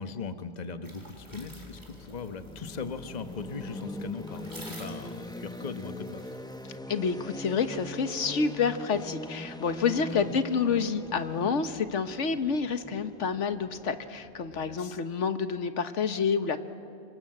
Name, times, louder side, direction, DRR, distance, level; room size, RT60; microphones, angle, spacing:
voice 1, 0.0-6.3 10.1-10.4 14.5-15.0, left 5 dB, 35° left, 9 dB, 1.2 m, -39 dB
sound 1, 0.8-6.8, equal, 15° right, 4.0 m, -51 dB
sound 2, 1.0-14.9, left 1 dB, 5° left, 0.5 m, -42 dB
voice 2, 6.9-16.6, left 5 dB, 75° left, 10 dB, 1.5 m, -28 dB
27.5 x 25.5 x 7.8 m, 2.4 s
omnidirectional pair, 1.3 m